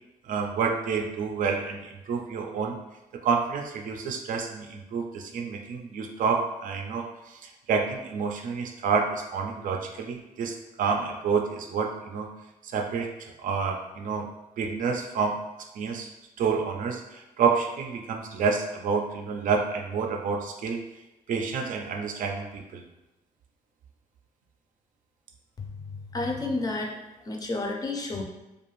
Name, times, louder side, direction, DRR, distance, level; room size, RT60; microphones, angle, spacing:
voice 1, 0.2-2.8 3.2-12.3 12.6-14.3 14.6-15.4 15.8-16.1 16.4-20.8 21.3-22.8, right 5 dB, 65° right, 3 dB, 0.4 m, -29 dB
voice 2, 25.6-26.9 27.2-28.2, left 2 dB, 25° left, 0 dB, 0.4 m, -31 dB
2.6 x 2.3 x 3.0 m, 0.99 s
cardioid pair, 130°, 15 cm